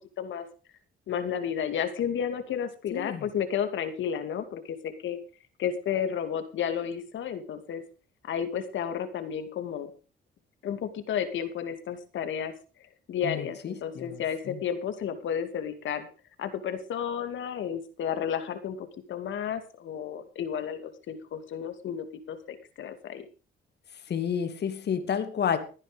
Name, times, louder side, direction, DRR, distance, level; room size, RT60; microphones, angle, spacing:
voice 1, 1.1-5.2 5.6-7.8 8.3-9.9 10.6-12.5 13.1-16.1 16.4-23.2, left 8 dB, 75° left, 9 dB, 2.5 m, -32 dB
voice 2, 2.9-3.3 13.2-14.6 24.1-25.6, left 8 dB, 60° left, 9 dB, 2.5 m, -31 dB
15.5 x 10.0 x 5.2 m, 0.36 s
cardioid pair, 90°, 20 cm